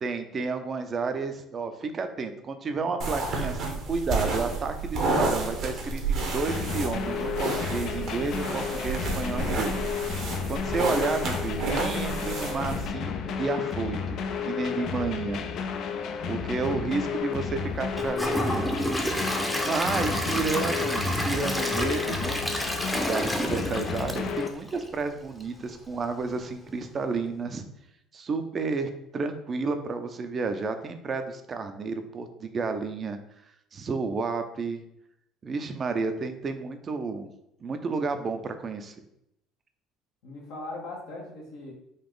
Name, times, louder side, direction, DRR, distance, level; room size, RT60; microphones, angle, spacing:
voice 1, 0.0-4.8 5.1-9.8 10.5-15.4 16.3-18.9 19.2-22.4 23.0-27.6 28.1-33.2 33.7-34.8 35.4-37.3 37.6-38.9, right 4 dB, 40° right, 8 dB, 0.5 m, -31 dB
sound 1, 3.0-12.9, right 3 dB, 60° right, 0.9 m, -31 dB
sound 2, 6.5-24.5, left 6 dB, 60° left, 0.4 m, -32 dB
Gurgling / Toilet flush / Trickle dribble, 17.9-25.0 25.4-25.5 26.0-26.1, equal, 5° left, 0.6 m, -30 dB
voice 2, 40.2-41.7, left 2 dB, 80° left, -3 dB, 1.0 m, -41 dB
3.9 x 2.4 x 3.7 m, 0.79 s
supercardioid pair, 80°, 0 cm